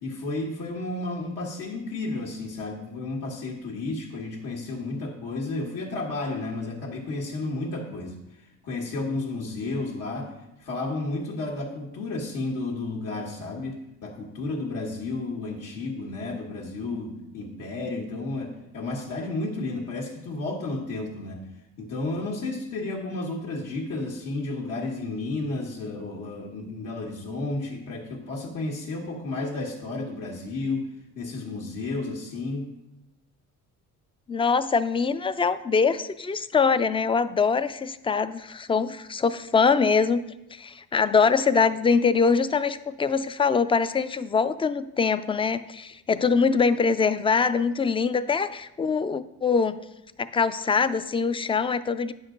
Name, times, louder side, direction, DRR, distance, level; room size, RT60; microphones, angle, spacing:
voice 1, 0.0-8.2 8.6-10.3 10.6-21.5 21.8-30.9 31.1-32.7, left 2 dB, 75° left, -4 dB, 1.6 m, -32 dB
voice 2, 34.3-40.2 40.5-49.8 50.2-52.1, left 5 dB, 20° left, 13 dB, 0.3 m, -23 dB
9.4 x 6.4 x 3.8 m, 0.90 s
cardioid pair, 110°, 31 cm